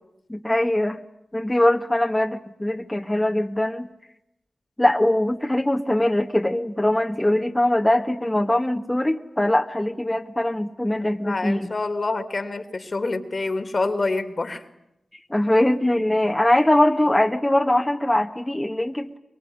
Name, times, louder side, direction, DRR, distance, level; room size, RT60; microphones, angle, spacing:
voice 1, 0.3-1.0 1.3-3.9 4.8-11.7 15.3-19.2, left 1 dB, 15° left, 3 dB, 1.7 m, -22 dB
voice 2, 11.0-14.6, left 3 dB, 50° left, 8 dB, 2.8 m, -27 dB
24.0 x 22.5 x 9.7 m, 0.85 s
cardioid pair, 40°, 0 cm